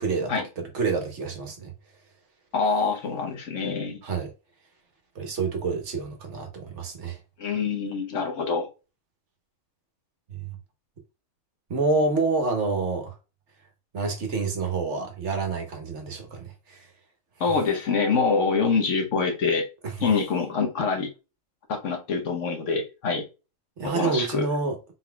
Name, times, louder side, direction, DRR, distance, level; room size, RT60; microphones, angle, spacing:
voice 1, 0.0-1.7 4.0-4.3 5.1-7.2 10.4-10.6 11.7-13.1 13.9-16.8 19.8-19.9 23.8-24.8, right 4 dB, 60° right, 1.3 m, -28 dB
voice 2, 2.5-4.0 7.4-8.7 17.4-19.7 20.0-21.1 21.7-23.2 23.8-24.5, left 5 dB, 65° left, 1.2 m, -25 dB
4.1 x 4.0 x 2.2 m
omnidirectional pair, 1.4 m